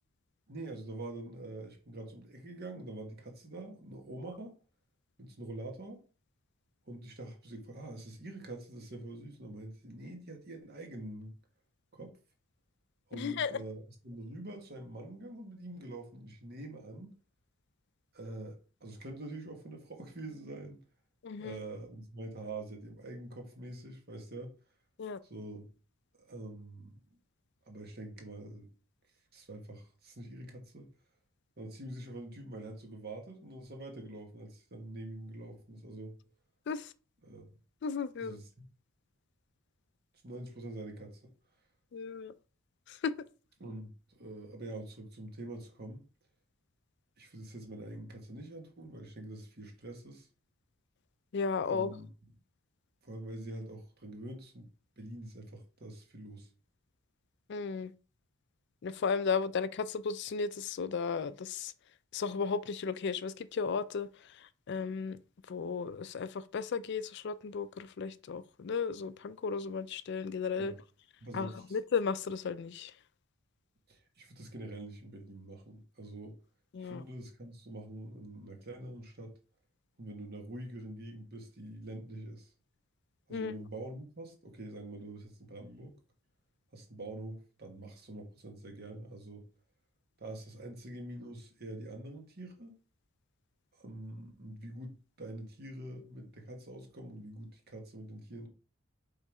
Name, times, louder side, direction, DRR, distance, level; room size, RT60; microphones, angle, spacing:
voice 1, 0.5-4.6 5.2-6.0 6.9-11.3 11.9-12.1 13.1-17.1 18.1-20.8 21.4-24.5 25.2-25.7 26.2-27.0 27.7-28.7 29.3-30.9 31.6-36.1 37.2-37.5 38.2-38.6 40.2-41.3 43.6-46.0 47.2-50.3 51.7-52.1 53.0-54.7 55.0-56.5 70.6-70.8 71.2-71.8 73.9-76.4 76.8-79.3 80.0-82.5 83.3-86.0 86.7-89.5 90.2-92.8 93.8-98.5, right 1 dB, 50° right, 1.5 m, -45 dB
voice 2, 13.1-13.5 21.2-21.6 25.0-25.2 36.7-36.9 37.8-38.4 41.9-42.3 42.9-43.1 51.3-51.9 57.5-57.9 58.8-61.7 62.1-65.2 65.5-70.7 71.3-72.9 76.7-77.0 83.3-83.5, left 5 dB, 55° left, 0.4 m, -35 dB
5.3 x 3.9 x 4.8 m
head